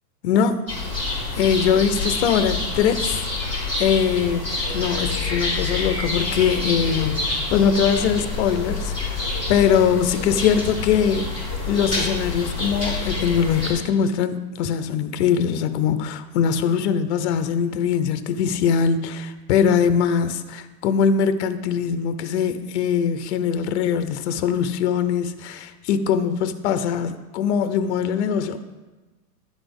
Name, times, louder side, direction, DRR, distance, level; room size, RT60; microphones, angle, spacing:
voice 1, 0.2-0.7 1.3-3.2 3.8-28.6, left 7 dB, 45° left, 10 dB, 0.6 m, -22 dB
sound 1, 0.7-13.7, left 3 dB, 10° right, 2.3 m, -27 dB
10.5 x 4.1 x 5.2 m, 1.2 s
supercardioid pair, 165°, 48 cm